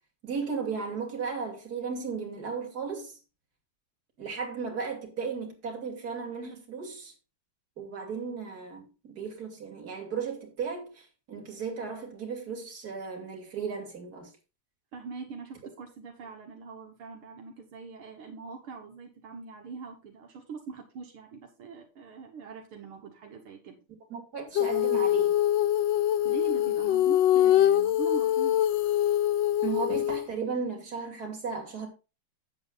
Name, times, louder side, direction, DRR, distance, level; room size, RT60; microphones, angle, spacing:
voice 1, 0.2-3.1 4.2-7.1 7.8-14.3 24.1-25.3 29.6-31.9, right 5 dB, 45° right, 3.0 m, -35 dB
voice 2, 14.9-23.8 26.2-28.6, right 5 dB, 80° right, 2.4 m, -42 dB
Female singing, 24.6-30.3, left 12 dB, 70° left, 1.2 m, -24 dB
8.9 x 7.8 x 4.0 m
omnidirectional pair, 2.3 m